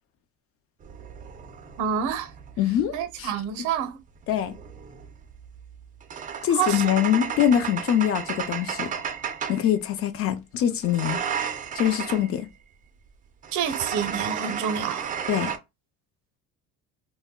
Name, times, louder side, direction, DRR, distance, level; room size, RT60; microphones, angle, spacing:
sound 1, 0.8-2.9 4.2-9.7 10.8-12.3 13.4-15.6, right 7 dB, 25° right, 0.4 m, -33 dB
voice 1, 1.8-2.3 2.9-4.0 6.5-6.9 13.5-15.2, right 8 dB, 65° right, 0.6 m, -28 dB
voice 2, 2.6-2.9 3.2-3.3 4.3-4.5 6.4-8.9 9.5-11.2 11.7-12.5 15.3-15.5, left 10 dB, 45° left, 0.4 m, -23 dB
2.1 x 2.1 x 3.5 m
cardioid pair, 140°, 32 cm